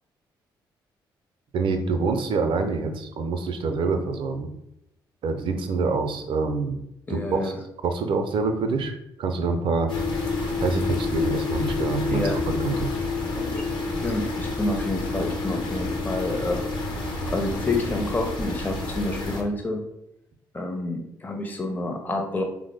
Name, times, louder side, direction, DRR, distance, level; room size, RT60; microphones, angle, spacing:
voice 1, 1.5-4.5 5.2-6.8 7.1-7.5 7.8-8.9 9.2-9.9 10.6-12.9, right 4 dB, 50° right, 6 dB, 0.5 m, -26 dB
voice 2, 7.1-7.6 12.1-12.4 13.4-16.6 17.2-19.8 20.5-22.4, left 2 dB, 15° left, 3 dB, 0.6 m, -29 dB
sound 1, 9.9-19.4, left 3 dB, 45° left, 0.8 m, -28 dB
3.5 x 2.0 x 3.3 m, 0.80 s
figure-of-eight pair, 40°, 11 cm